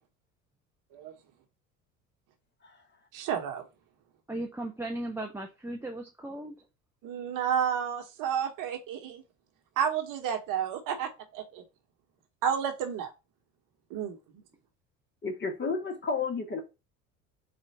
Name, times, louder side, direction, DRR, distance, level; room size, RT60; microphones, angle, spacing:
voice 1, 3.1-3.6 7.0-9.2 9.8-11.6 12.4-13.1 13.9-14.2, right 8 dB, 55° right, 1.1 m, -31 dB
voice 2, 4.3-6.6, right 1 dB, 5° right, 0.6 m, -37 dB
voice 3, 15.2-16.6, left 4 dB, 25° left, 1.3 m, -32 dB
4.3 x 2.5 x 4.3 m
hypercardioid pair, 70°, 39 cm